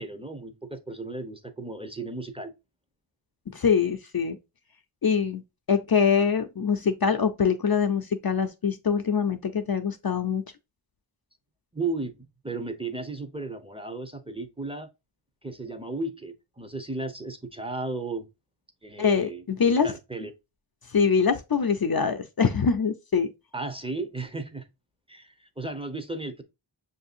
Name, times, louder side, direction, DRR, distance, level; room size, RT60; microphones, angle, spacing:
voice 1, 0.0-2.5 11.7-12.1 12.4-14.9 15.4-18.3 18.8-19.4 19.8-20.3 23.5-24.7 25.1-26.4, right 3 dB, 10° right, 0.7 m, -34 dB
voice 2, 3.5-4.4 5.0-5.4 5.7-10.4 19.0-19.9 20.9-23.3, left 6 dB, 50° left, 0.5 m, -24 dB
6.4 x 2.7 x 2.5 m
wide cardioid pair, 45°, 49 cm